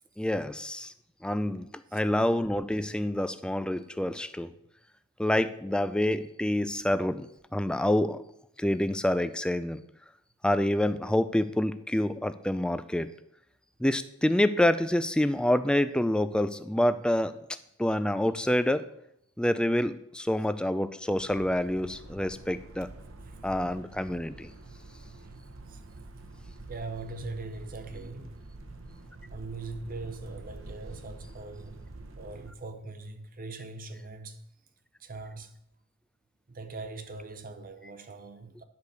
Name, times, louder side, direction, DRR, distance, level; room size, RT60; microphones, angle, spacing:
voice 1, 0.2-0.9 1.2-1.7 1.9-4.5 5.2-7.3 7.5-8.2 8.6-9.8 10.4-13.1 13.8-17.4 17.8-18.8 19.4-22.9 23.4-24.5, left 1 dB, 5° left, 0.4 m, -27 dB
sound 1, 21.2-32.5, right 2 dB, 65° right, 1.0 m, -47 dB
voice 2, 26.7-28.3 29.3-31.9 32.2-34.4 35.0-35.6 36.5-38.7, right 3 dB, 40° right, 0.8 m, -41 dB
10.5 x 4.9 x 6.8 m
head